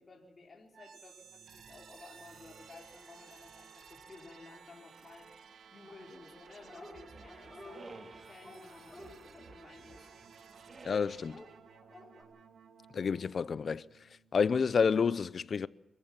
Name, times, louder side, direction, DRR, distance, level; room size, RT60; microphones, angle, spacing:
voice 1, 0.0-5.4 5.7-7.9 8.3-10.1, left 3 dB, 40° left, 4.0 m, -55 dB
sound 1, 0.7-14.6, right 6 dB, 80° right, 1.7 m, -56 dB
Dog, 5.8-6.3 6.6-7.0 7.3-10.7 11.3-12.2, left 1 dB, 5° left, 7.8 m, -53 dB
sound 2, 6.9-8.4 9.0-10.1 10.6-11.5, right 3 dB, 40° right, 2.8 m, -53 dB
voice 2, 10.8-11.4 12.9-13.8 14.3-15.7, left 6 dB, 60° left, 0.6 m, -29 dB
26.0 x 14.5 x 7.4 m
cardioid pair, 85°, 0 cm